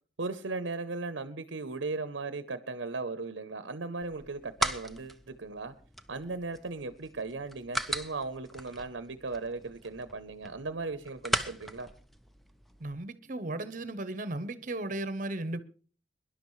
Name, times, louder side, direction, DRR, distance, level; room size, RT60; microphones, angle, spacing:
voice 1, 0.2-5.7 6.1-11.9, right 3 dB, 85° right, 0.8 m, -37 dB
sound 1, 4.0-12.9, right 1 dB, ahead, 0.6 m, -38 dB
voice 2, 12.8-15.6, right 2 dB, 45° right, 1.0 m, -35 dB
22.5 x 11.5 x 3.2 m
head